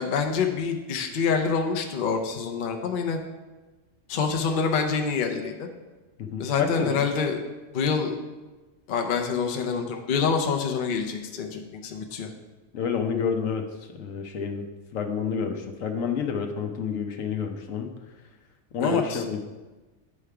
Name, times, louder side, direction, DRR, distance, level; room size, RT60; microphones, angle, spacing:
voice 1, 0.0-3.2 4.1-5.7 6.4-7.4 7.7-8.2 8.9-12.3 18.8-19.2, left 5 dB, 50° left, 4 dB, 0.7 m, -26 dB
voice 2, 6.2-7.0 12.7-13.7 13.9-17.9 18.7-19.4, left 6 dB, 75° left, 5 dB, 1.1 m, -29 dB
9.8 x 3.4 x 4.7 m, 1.2 s
omnidirectional pair, 1.4 m